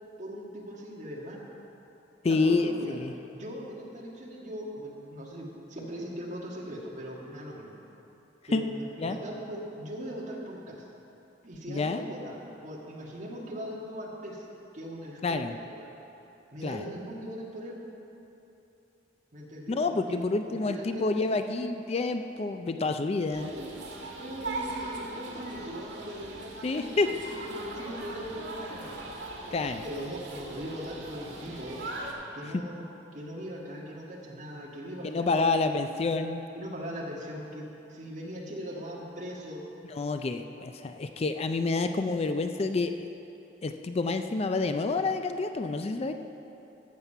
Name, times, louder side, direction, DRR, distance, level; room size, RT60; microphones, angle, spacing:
voice 1, 0.2-1.4 2.3-3.0 3.3-7.8 8.5-8.7 9.0-10.8 11.4-12.4 12.6-14.5 14.7-15.9 16.5-17.8 19.3-20.2 20.4-21.3 23.3-23.8 24.2-29.2 29.8-31.8 32.3-32.8 33.1-35.3 36.0-36.1 36.6-39.6, equal, 40° right, -3 dB, 1.8 m, -40 dB
voice 2, 2.2-3.1 8.5-8.6 9.0-9.2 11.7-12.0 15.2-15.5 16.6-16.8 19.7-23.5 26.6-27.1 29.5-29.8 35.0-36.4 39.9-43.1 43.6-46.1, left 3 dB, 35° left, 8 dB, 0.4 m, -28 dB
sound 1, 23.3-32.1, right 2 dB, 85° right, 1.8 m, -40 dB
14.0 x 7.4 x 5.6 m, 2.9 s
head